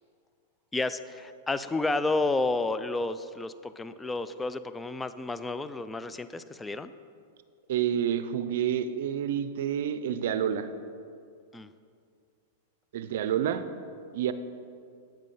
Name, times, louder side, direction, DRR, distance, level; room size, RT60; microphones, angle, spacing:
voice 1, 0.7-6.9 11.5-11.7, left 2 dB, 10° left, 12 dB, 0.4 m, -31 dB
voice 2, 7.7-10.7 12.9-13.6 14.1-14.3, right 9 dB, 70° right, 12 dB, 0.5 m, -28 dB
9.0 x 7.4 x 5.6 m, 2.3 s
hypercardioid pair, 125°, 0 cm